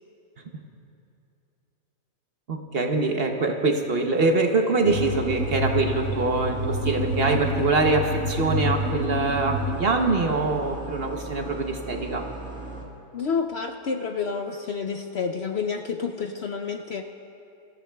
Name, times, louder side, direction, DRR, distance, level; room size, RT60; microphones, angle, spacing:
voice 1, 2.5-12.2, right 3 dB, 45° right, 3 dB, 1.0 m, -24 dB
sound 1, 4.8-9.8, equal, 80° right, 1.6 m, -28 dB
sound 2, 4.9-12.9, right 2 dB, 5° left, 1.7 m, -38 dB
voice 2, 13.1-17.0, left 5 dB, 60° left, 4 dB, 0.7 m, -29 dB
24.5 x 15.0 x 2.3 m, 2.7 s
omnidirectional pair, 1.5 m